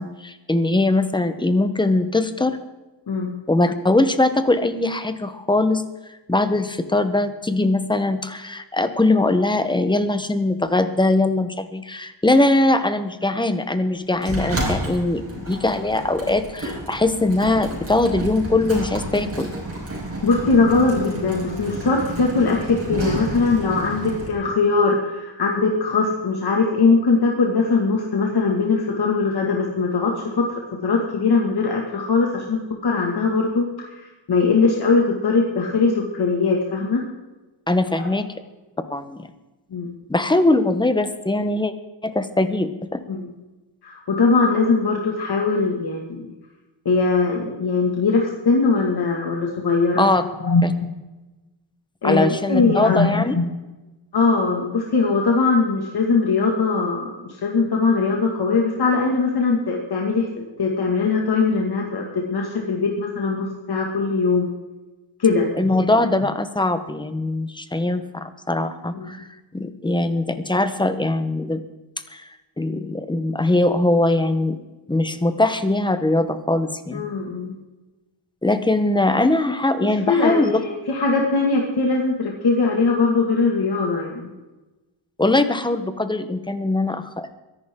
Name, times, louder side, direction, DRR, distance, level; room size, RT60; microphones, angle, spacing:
voice 1, 0.0-2.6 3.5-5.8 6.3-19.5 37.7-38.3 38.9-39.3 40.1-41.7 42.0-43.0 50.0-50.2 50.6-50.7 52.0-53.3 65.6-69.3 69.5-71.6 72.1-72.3 72.6-74.6 74.9-77.0 78.4-80.6 85.2-87.3, left 2 dB, 10° left, 10 dB, 1.1 m, -21 dB
Sliding door, 14.2-24.3, right 2 dB, 30° right, 4.9 m, -30 dB
voice 2, 20.2-30.5 30.8-37.0 37.9-38.1 39.7-39.9 43.1-43.3 43.8-46.3 46.9-50.1 50.4-50.6 52.0-53.5 54.1-60.3 60.6-64.5 65.2-65.8 68.9-69.1 76.9-77.5 80.1-84.3, left 4 dB, 55° left, 0 dB, 2.1 m, -21 dB
23.5 x 11.0 x 3.8 m, 1.1 s
wide cardioid pair, 140°, 45 cm